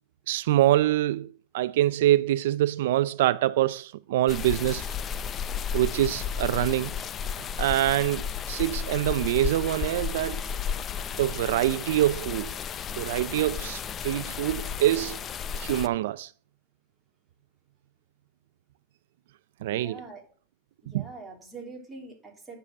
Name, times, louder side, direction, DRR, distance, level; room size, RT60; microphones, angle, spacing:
voice 1, 0.3-4.9 5.7-7.0 7.6-10.4 11.2-12.5 13.0-15.2 15.6-16.3 19.6-20.0 20.9-21.1, right 14 dB, 70° right, 0.5 m, -25 dB
sound 1, 4.3-15.9, left 7 dB, 25° left, 0.5 m, -33 dB
voice 2, 19.7-20.2 20.8-22.6, right 3 dB, 5° right, 3.2 m, -44 dB
9.9 x 6.9 x 7.6 m
supercardioid pair, 150°, 0 cm